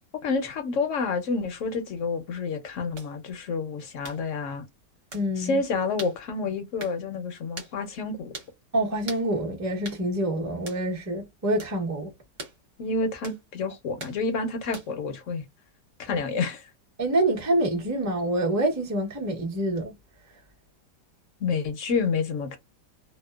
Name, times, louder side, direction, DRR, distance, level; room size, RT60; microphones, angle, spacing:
voice 1, 0.2-4.6 5.4-8.3 12.8-15.4 16.0-16.7 21.4-22.6, left 4 dB, 65° left, 0.8 m, -29 dB
sound 1, 3.0-3.1 4.0-4.2 5.1-5.3 6.0-6.2 6.8-7.0 7.6-7.7 8.3-8.5 9.1-9.3 9.8-10.0 10.7-10.8 11.6-11.8 12.4-12.6 13.2-13.4 14.0-14.2 14.7-15.0, right 3 dB, 55° right, 1.1 m, -40 dB
voice 2, 5.1-5.6 8.7-12.1 16.1-16.2 17.0-19.9, right 1 dB, 20° right, 0.4 m, -26 dB
2.8 x 2.0 x 2.2 m
omnidirectional pair, 1.9 m